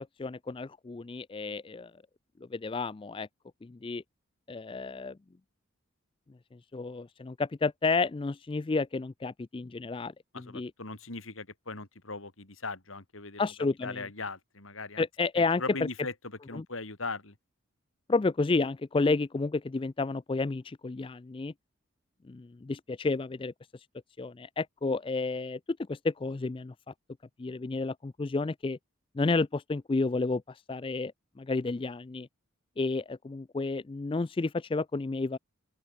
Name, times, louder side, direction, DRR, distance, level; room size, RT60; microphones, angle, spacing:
voice 1, 0.2-1.9 2.5-3.3 3.6-4.0 4.5-5.2 6.7-10.7 13.4-14.0 15.0-15.6 16.5-16.6 18.1-21.5 22.3-23.5 24.2-25.6 25.9-26.7 27.4-28.8 29.2-31.1 31.4-32.3 32.8-35.4, left 3 dB, 25° left, 0.3 m, -31 dB
voice 2, 10.3-13.4 13.8-15.0 15.3-16.1 16.5-17.3, left 3 dB, 70° left, 3.3 m, -39 dB
open air
head